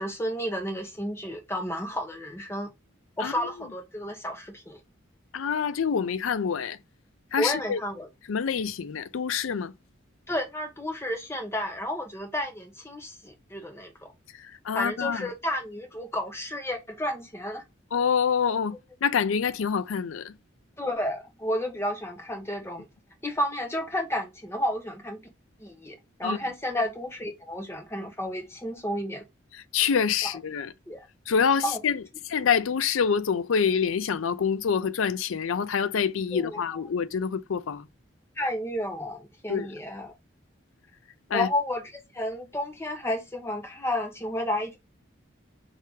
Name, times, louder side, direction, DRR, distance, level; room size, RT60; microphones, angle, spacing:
voice 1, 0.0-2.7 3.2-4.8 7.4-8.1 10.3-14.1 14.7-17.6 20.8-22.9 23.2-25.2 25.6-29.2 30.2-30.3 30.9-31.0 31.6-31.8 36.3-36.8 38.4-40.1 41.3-44.8, left 1 dB, 15° left, 0.9 m, -31 dB
voice 2, 5.3-6.8 7.3-7.8 8.3-9.7 14.4-15.3 17.9-18.8 19.0-20.3 26.2-26.4 29.5-30.7 31.3-37.9 39.5-39.7 41.3-41.5, left 6 dB, 90° left, 0.4 m, -26 dB
4.8 x 2.8 x 3.6 m
head